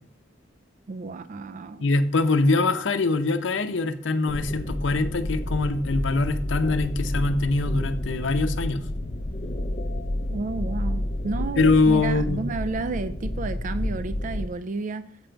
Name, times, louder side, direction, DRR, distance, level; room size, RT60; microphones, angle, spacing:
voice 1, 0.9-1.9 10.3-15.0, right 3 dB, 45° right, 11 dB, 0.3 m, -31 dB
voice 2, 1.8-8.8 11.6-12.4, left 3 dB, 80° left, 10 dB, 0.6 m, -23 dB
sound 1, 4.3-14.5, left 1 dB, 40° left, 0.5 m, -30 dB
8.1 x 5.1 x 4.5 m, 0.64 s
head